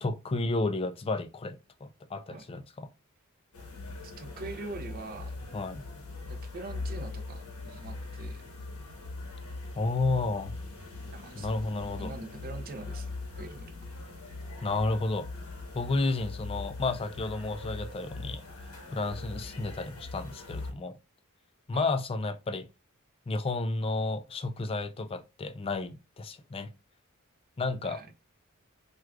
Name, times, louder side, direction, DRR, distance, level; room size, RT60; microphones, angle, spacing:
voice 1, 0.0-2.9 5.5-5.8 9.8-10.5 11.3-12.1 14.6-15.3 15.7-18.4 18.9-21.0 21.7-22.7 23.3-26.7 27.6-28.0, left 3 dB, 25° left, 0.3 m, -31 dB
sound 1, 3.5-20.7, left 3 dB, 85° left, 0.9 m, -41 dB
voice 2, 4.0-5.4 6.3-8.4 11.1-11.5 12.0-13.8 21.7-21.9 27.8-28.1, right 3 dB, 45° right, 0.5 m, -43 dB
4.6 x 2.3 x 2.3 m
head